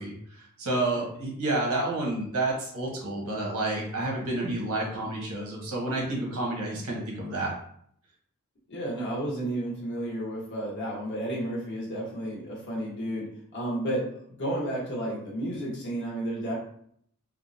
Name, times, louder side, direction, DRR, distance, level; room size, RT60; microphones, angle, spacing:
voice 1, 0.0-7.6, right 2 dB, 90° right, -2 dB, 1.1 m, -30 dB
voice 2, 8.7-16.5, right 1 dB, 55° left, -4 dB, 1.1 m, -32 dB
3.6 x 2.1 x 2.6 m, 0.64 s
head